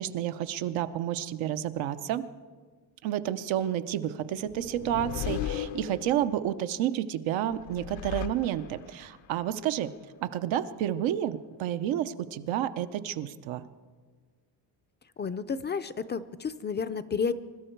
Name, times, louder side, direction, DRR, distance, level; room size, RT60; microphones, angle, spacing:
voice 1, 0.0-2.2 3.0-9.9 10.2-13.6, right 11 dB, 90° right, 10 dB, 0.8 m, -30 dB
sound 1, 4.5-6.5 7.5-9.0, left 10 dB, 85° left, 0.9 m, -36 dB
voice 2, 15.2-17.3, left 5 dB, 25° left, 12 dB, 0.4 m, -31 dB
23.5 x 12.5 x 4.5 m, 1.5 s
cardioid pair, 125°, 44 cm